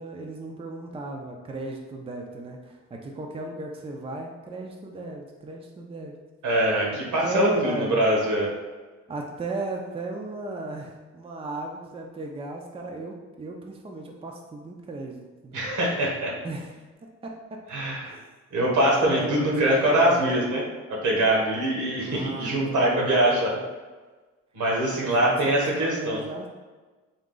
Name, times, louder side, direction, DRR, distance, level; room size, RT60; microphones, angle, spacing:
voice 1, 0.0-6.2 7.2-8.0 9.1-15.6 16.4-16.8 17.2-17.6 18.0-18.2 18.7-20.5 21.9-23.6 25.0-26.5, right 2 dB, 20° right, 1 dB, 0.4 m, -36 dB
voice 2, 6.4-8.5 15.5-16.3 17.7-18.1 18.5-20.6 20.9-23.6 24.5-26.2, right 1 dB, 75° right, -2 dB, 1.3 m, -23 dB
3.7 x 2.3 x 3.8 m, 1.3 s
cardioid pair, 90°, 30 cm